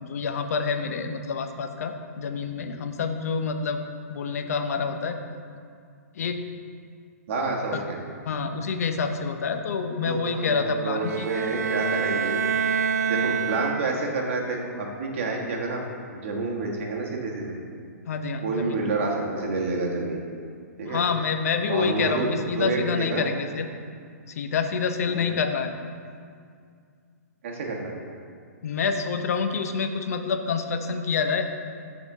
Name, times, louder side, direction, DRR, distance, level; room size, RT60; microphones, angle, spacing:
voice 1, 0.0-3.8 4.1-5.2 6.1-6.4 7.7-7.8 8.2-11.3 18.1-18.8 20.9-23.7 24.3-25.7 28.6-31.4, left 5 dB, 65° left, 7 dB, 0.7 m, -27 dB
voice 2, 7.3-8.0 10.0-12.5 13.1-15.8 16.1-17.6 18.4-20.2 20.8-21.0 21.7-23.2 25.1-25.3 27.4-27.9, right 3 dB, 50° right, -1 dB, 1.4 m, -29 dB
sound 1, 11.0-14.2, right 6 dB, 80° right, 0.4 m, -27 dB
7.5 x 3.9 x 6.0 m, 2.2 s
hypercardioid pair, 140°, 9 cm